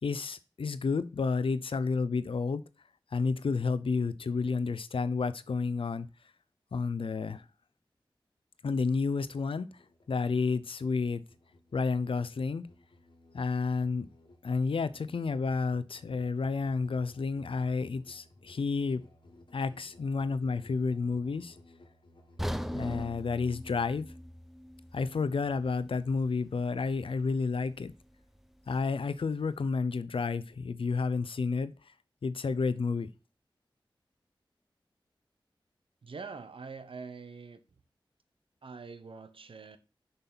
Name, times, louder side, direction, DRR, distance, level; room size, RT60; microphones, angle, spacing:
voice 1, 0.0-2.6 3.1-6.1 6.7-7.4 8.6-9.7 10.1-11.2 11.7-12.6 13.3-14.1 14.4-19.0 19.5-21.6 22.7-24.1 24.9-27.9 28.7-31.7 32.2-33.1, left 4 dB, 85° left, 0.6 m, -30 dB
Musical instrument, 9.3-23.8, left 1 dB, 65° left, 1.6 m, -59 dB
sound 1, 22.4-26.5 26.8-27.0 27.6-27.7, equal, 5° right, 0.6 m, -40 dB
voice 2, 36.0-37.6 38.6-39.8, right 4 dB, 80° right, 0.9 m, -44 dB
6.9 x 5.5 x 4.0 m
wide cardioid pair, 45°, 9 cm